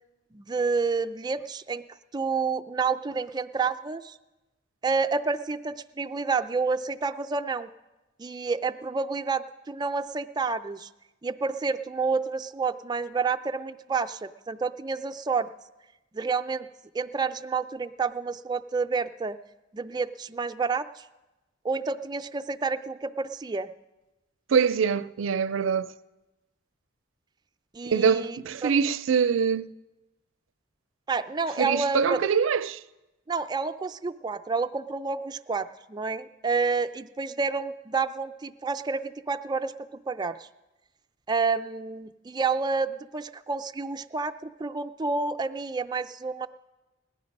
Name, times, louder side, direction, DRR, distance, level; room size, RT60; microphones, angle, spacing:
voice 1, 0.3-1.8 2.1-4.1 4.8-7.7 8.2-10.9 11.2-15.5 16.1-16.7 16.9-19.4 19.7-21.1 21.6-23.7 27.7-28.7 31.1-32.2 33.3-40.5 41.3-46.5, right 4 dB, 20° right, 0.4 m, -29 dB
voice 2, 24.5-25.9 27.8-29.7 31.6-32.8, right 6 dB, 80° right, 0.4 m, -24 dB
17.5 x 11.0 x 5.3 m
head